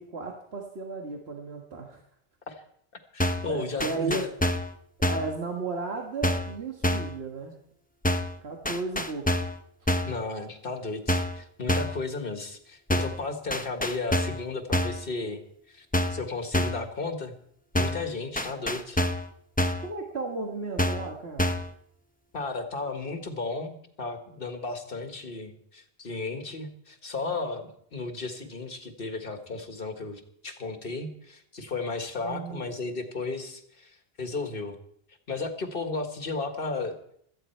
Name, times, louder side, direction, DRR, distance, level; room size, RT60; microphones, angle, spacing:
voice 1, 0.0-2.0 3.4-4.3 5.0-7.6 8.4-9.3 19.8-21.5 32.2-32.7, right 3 dB, 80° right, 1 dB, 1.8 m, -34 dB
voice 2, 3.1-4.3 10.1-17.3 17.7-19.0 22.3-34.8 35.3-37.0, left 3 dB, 60° left, 6 dB, 1.8 m, -34 dB
sound 1, 3.2-3.5 3.8-4.7 5.0-5.3 6.2-6.5 6.8-7.2 8.0-8.4 8.6-9.6 9.9-10.2 11.1-11.4 11.7-12.0 12.9-13.2 13.5-14.4 14.7-15.0 15.9-16.3 16.5-16.9 17.7-18.1 18.4-19.3 19.6-19.9 20.8-21.1 21.4-21.7, left 1 dB, 10° left, 0.7 m, -27 dB
17.0 x 13.5 x 4.5 m, 0.69 s
omnidirectional pair, 1.0 m